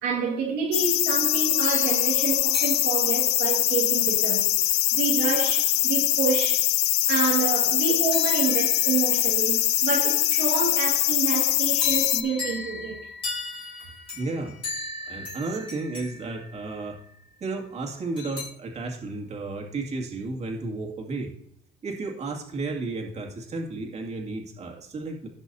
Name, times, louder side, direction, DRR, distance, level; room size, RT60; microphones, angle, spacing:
voice 1, 0.0-4.5 4.9-6.7 7.1-13.0, right 5 dB, 85° right, 2.0 m, -28 dB
sound 1, 0.7-12.2, left 15 dB, 75° left, 0.5 m, -23 dB
sound 2, 1.3-3.5 8.1-10.9 11.8-17.2 18.2-18.4, left 4 dB, 30° left, 3.6 m, -37 dB
voice 2, 14.1-14.6 15.1-17.0 17.4-21.3 21.8-25.3, right 3 dB, 40° right, 2.3 m, -33 dB
17.0 x 6.1 x 2.8 m
cardioid pair, 110°, 17 cm